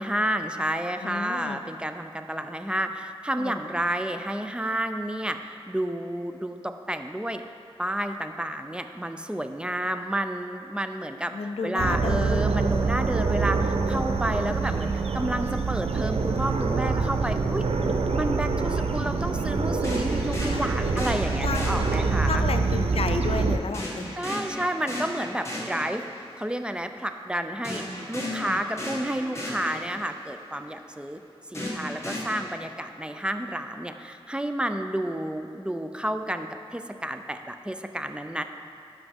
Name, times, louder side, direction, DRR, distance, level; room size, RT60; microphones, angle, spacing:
voice 1, 0.0-7.4 7.8-11.3 11.6-17.7 18.1-22.5 24.2-26.1 26.4-31.2 31.5-38.4, right 1 dB, 10° right, 7 dB, 0.4 m, -30 dB
voice 2, 1.0-1.6 3.4-3.6 11.3-12.5 20.5-21.9 22.3-24.2 28.2-28.6, left 4 dB, 75° left, 7 dB, 0.4 m, -33 dB
sound 1, 11.8-23.6, right 4 dB, 85° right, 0.5 m, -25 dB
sound 2, 19.8-22.5 23.7-26.4 27.6-30.3 31.5-32.4, left 1 dB, 25° left, 2.0 m, -35 dB
11.0 x 6.0 x 3.6 m, 2.6 s
wide cardioid pair, 70°, 10 cm